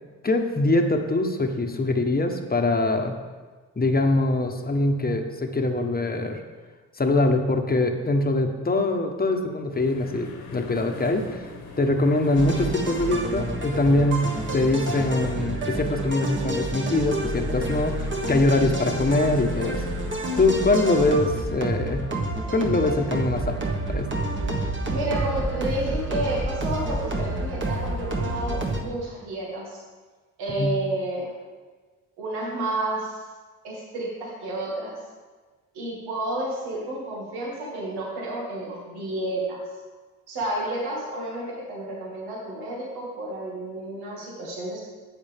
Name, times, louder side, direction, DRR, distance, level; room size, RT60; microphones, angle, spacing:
voice 1, 0.2-3.1 3.8-6.4 7.0-11.5 11.8-19.8 20.4-22.1 22.5-23.6 23.9-24.1 30.6-30.7, left 2 dB, 25° left, 4 dB, 1.2 m, -23 dB
sound 1, 9.7-15.3, left 3 dB, 75° left, 1.7 m, -40 dB
sound 2, 12.3-28.8, right 1 dB, 30° right, 1.6 m, -29 dB
voice 2, 24.9-29.8 30.4-31.3 32.2-33.2 33.6-34.9 35.7-39.6 40.3-44.8, right 1 dB, 80° right, -4 dB, 2.3 m, -31 dB
11.0 x 7.9 x 3.6 m, 1.4 s
supercardioid pair, 60°, 38 cm